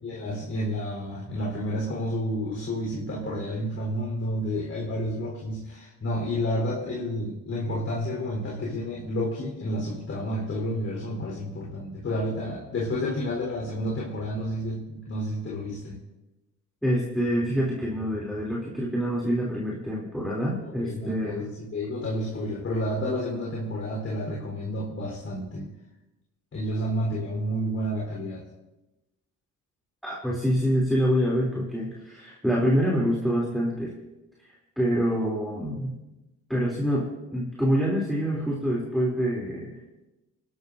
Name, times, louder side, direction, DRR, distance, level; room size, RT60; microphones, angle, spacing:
voice 1, 0.0-16.0 20.6-25.7 26.5-28.5, equal, 50° left, -4 dB, 4.2 m, -30 dB
voice 2, 16.8-21.4 30.0-33.9 34.8-36.0 36.5-39.8, equal, ahead, -4 dB, 3.2 m, -26 dB
28.5 x 12.5 x 2.7 m, 1.0 s
cardioid pair, 90°, 30 cm